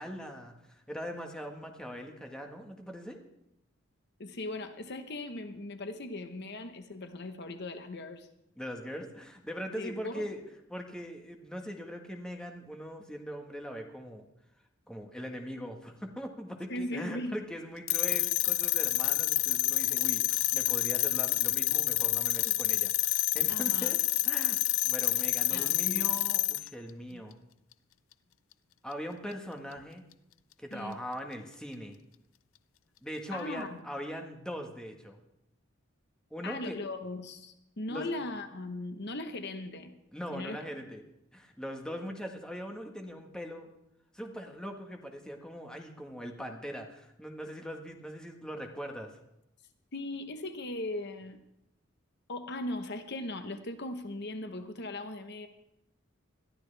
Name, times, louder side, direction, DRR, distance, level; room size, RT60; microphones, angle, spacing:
voice 1, 0.0-3.2 8.6-10.4 10.7-14.2 14.9-24.6 24.8-27.4 28.8-30.0 30.6-32.0 33.0-35.2 36.3-36.8 37.9-38.1 40.1-41.0 41.3-43.7 44.1-49.1, equal, 5° left, 2 dB, 1.5 m, -41 dB
voice 2, 4.2-8.3 9.7-10.3 16.7-17.4 23.5-24.0 25.5-26.1 27.1-27.2 30.7-31.0 33.3-33.8 36.4-39.9 40.3-40.6 49.9-51.4 52.3-55.5, left 2 dB, 55° left, 8 dB, 1.0 m, -38 dB
sound 1, 17.9-26.7, left 16 dB, 70° left, 0.5 m, -28 dB
21.0 x 13.0 x 3.4 m, 0.84 s
head